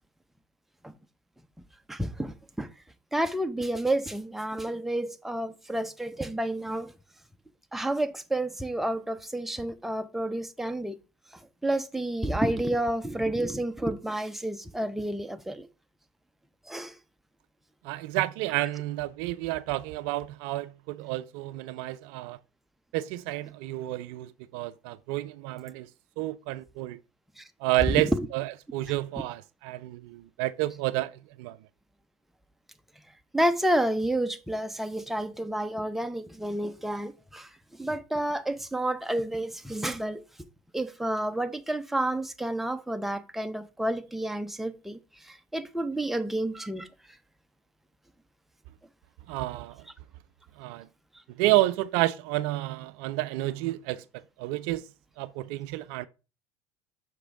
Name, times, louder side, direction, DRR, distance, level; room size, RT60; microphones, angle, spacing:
voice 1, 1.9-2.7 3.1-6.9 7.7-11.0 11.6-15.7 16.7-16.9 27.4-27.5 28.1-28.2 33.3-37.5 37.8-40.2 40.7-46.9, right 1 dB, ahead, 0.6 m, -30 dB
voice 2, 17.8-22.4 22.9-25.9 26.2-27.0 27.6-31.6 49.3-49.8 50.6-50.9 51.3-54.0 54.4-54.9 55.2-56.1, right 17 dB, 55° right, 0.4 m, -30 dB
6.1 x 4.9 x 3.6 m
hypercardioid pair, 75°, 15 cm